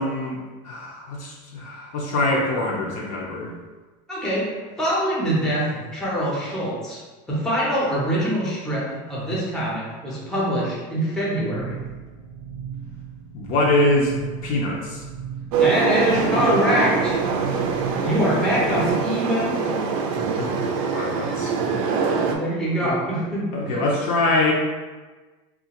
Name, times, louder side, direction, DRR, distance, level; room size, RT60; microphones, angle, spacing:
voice 1, 0.0-3.5 13.3-14.1 14.4-15.0 20.2-21.5 22.8-23.0 23.5-24.5, left 2 dB, 45° left, -3 dB, 0.5 m, -24 dB
voice 2, 4.1-4.5 4.8-7.0 7.3-11.8 15.6-17.2 18.0-19.6 22.0-23.8, equal, 5° left, -7 dB, 0.6 m, -24 dB
sound 1, 11.5-18.9, right 7 dB, 35° right, 0.6 m, -37 dB
sound 2, 15.5-22.4, right 5 dB, 80° right, 0.5 m, -23 dB
3.7 x 2.4 x 2.9 m, 1.3 s
cardioid pair, 175°, 17 cm